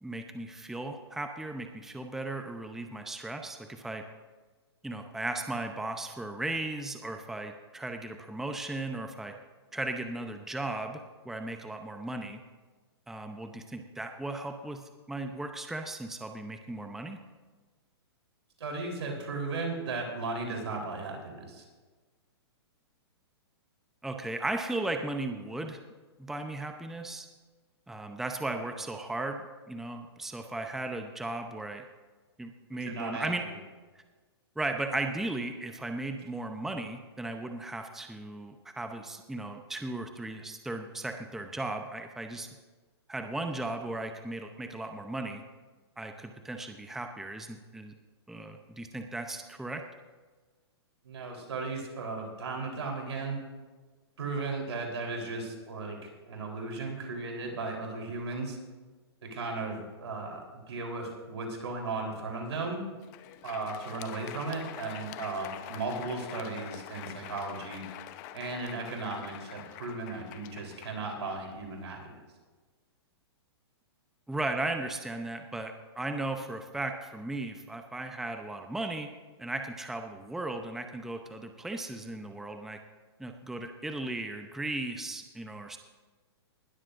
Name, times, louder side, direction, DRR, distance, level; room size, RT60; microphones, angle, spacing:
voice 1, 0.0-4.0 4.8-9.3 9.7-12.4 13.1-17.2 24.0-25.8 26.2-27.3 27.9-29.4 29.7-31.8 32.4-33.5 34.6-42.5 43.1-45.4 46.0-47.9 48.3-49.8 74.3-79.1 79.4-82.8 83.2-85.8, right 2 dB, 5° right, 5 dB, 0.7 m, -36 dB
voice 2, 18.6-21.6 32.8-33.5 51.0-53.4 54.2-58.6 59.2-62.8 63.4-67.8 68.3-72.2, right 3 dB, 80° right, 1 dB, 3.8 m, -36 dB
Crowd, 62.9-71.8, left 12 dB, 40° left, 0.8 m, -45 dB
19.5 x 13.0 x 2.6 m, 1.4 s
hypercardioid pair, 130°, 14 cm